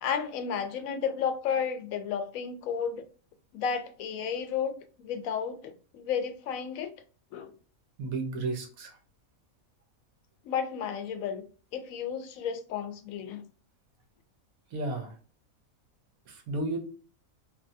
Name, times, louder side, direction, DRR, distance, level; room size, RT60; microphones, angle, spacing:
voice 1, 0.0-3.0 3.5-6.9 7.3-7.5 10.4-11.4 11.7-13.4, left 7 dB, 75° left, 1.0 m, -32 dB
voice 2, 8.0-9.0 14.7-15.2 16.3-16.8, right 2 dB, 85° right, 1.3 m, -33 dB
2.8 x 2.6 x 2.6 m
omnidirectional pair, 1.5 m